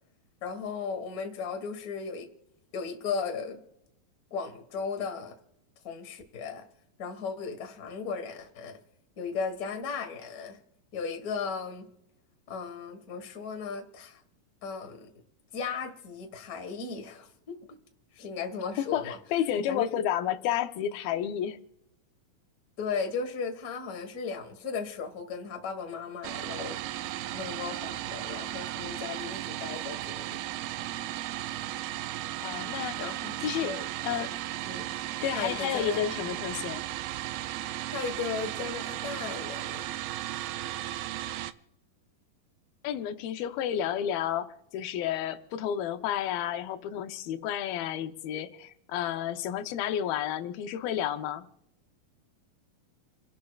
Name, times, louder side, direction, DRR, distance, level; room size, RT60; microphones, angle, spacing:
voice 1, 0.4-2.3 2.7-3.6 4.3-5.4 5.8-6.7 7.0-8.8 9.2-10.6 10.9-11.9 12.5-14.2 14.6-15.1 15.5-17.8 18.1-19.2 19.7-20.0 22.8-26.8 27.3-30.2 33.0-33.9 34.6-34.9 35.3-36.0 37.9-39.9, left 5 dB, 50° left, 1.1 m, -36 dB
voice 2, 18.8-21.6 32.4-33.0 33.4-33.8 34.0-34.3 35.2-36.8 42.8-51.4, left 10 dB, 90° left, 2.7 m, -31 dB
sound 1, 26.2-41.5, right 14 dB, 90° right, 2.4 m, -35 dB
29.0 x 11.5 x 2.4 m
omnidirectional pair, 4.1 m